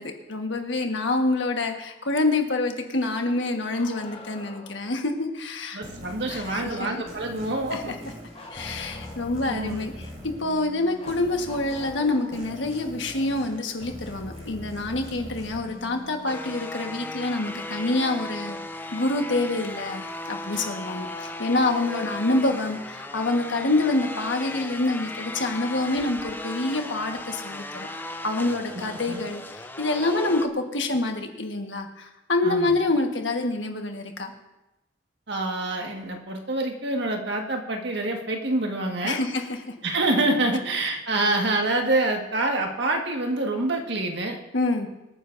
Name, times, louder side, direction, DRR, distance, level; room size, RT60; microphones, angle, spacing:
voice 1, 0.0-5.8 6.3-6.9 7.7-7.9 8.5-18.6 18.9-27.9 28.2-34.3 39.0-39.7 44.5-44.9, left 2 dB, 75° left, 4 dB, 1.5 m, -27 dB
Bark, 3.7-4.8 8.3-9.4 11.0-12.5 14.2-14.3 16.2-16.3 17.4-17.5, left 2 dB, 30° left, 1.3 m, -45 dB
voice 2, 5.7-7.9 9.4-9.8 20.5-20.7 28.7-29.2 32.4-32.7 35.3-39.2 39.8-44.4, right 2 dB, 65° right, 2 dB, 1.7 m, -26 dB
sound 1, 5.8-17.0, equal, 35° right, 4.3 m, -42 dB
sound 2, 16.3-30.5, left 2 dB, 10° left, 0.6 m, -36 dB
24.5 x 9.6 x 2.7 m, 0.96 s
head